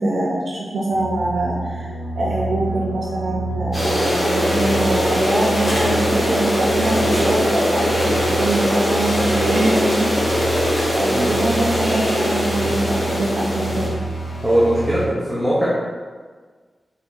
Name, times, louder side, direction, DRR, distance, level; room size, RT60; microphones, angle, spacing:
voice 1, 0.0-10.1 10.5-14.0, right 2 dB, 80° right, -6 dB, 0.6 m, -24 dB
sound 1, 0.9-15.1, right 2 dB, 60° left, 0.5 m, -29 dB
sound 2, 3.7-13.9, equal, 30° left, 1.2 m, -21 dB
voice 2, 14.4-15.7, right 1 dB, ahead, -9 dB, 0.6 m, -19 dB
3.8 x 2.8 x 3.5 m, 1.5 s
wide cardioid pair, 180°, 0 cm